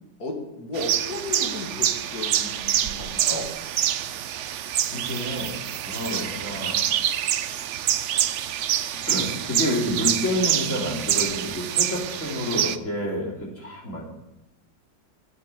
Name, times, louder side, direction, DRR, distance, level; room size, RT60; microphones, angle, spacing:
voice 1, 0.2-3.5 6.0-6.4, left 2 dB, 55° left, 1 dB, 2.6 m, -34 dB
sound 1, 0.7-12.8, right 10 dB, 90° right, 0.6 m, -26 dB
voice 2, 4.9-5.6 5.8-6.9 8.5-8.8 9.1-14.0, left 1 dB, 40° left, -3 dB, 4.0 m, -29 dB
10.0 x 8.6 x 9.1 m, 0.91 s
omnidirectional pair, 2.0 m